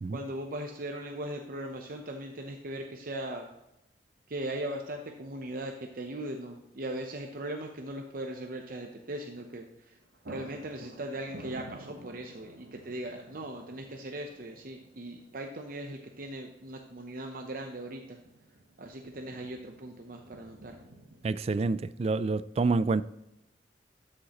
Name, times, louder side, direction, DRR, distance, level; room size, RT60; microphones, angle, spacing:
voice 1, 0.1-3.5 4.3-10.0 10.3-18.2 18.8-20.8, right 1 dB, 55° right, 0.8 m, -39 dB
sound 1, 9.9-21.3, right 1 dB, 75° right, 1.1 m, -51 dB
voice 2, 21.2-23.0, right 3 dB, 35° right, 0.3 m, -28 dB
12.5 x 6.5 x 3.0 m
head